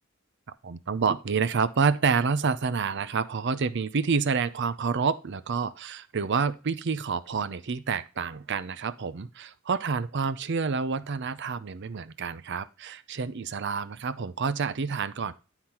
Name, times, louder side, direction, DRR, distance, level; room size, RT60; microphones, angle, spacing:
voice 1, 0.6-15.3, right 5 dB, 55° right, 14 dB, 0.6 m, -28 dB
11.5 x 4.0 x 4.3 m, 0.33 s
head